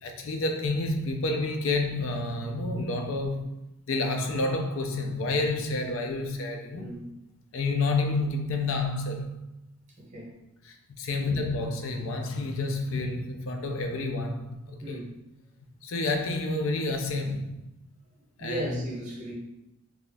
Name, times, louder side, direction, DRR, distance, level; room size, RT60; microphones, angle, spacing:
voice 1, 0.0-3.5 3.9-6.9 7.5-9.4 10.7-15.0 15.8-17.6 18.4-18.9, left 2 dB, 65° left, 4 dB, 0.4 m, -29 dB
voice 2, 6.7-7.1 10.0-10.4 11.1-11.5 14.8-15.2 18.4-19.3, right 1 dB, 35° right, -4 dB, 1.0 m, -37 dB
2.9 x 2.3 x 3.9 m, 0.87 s
head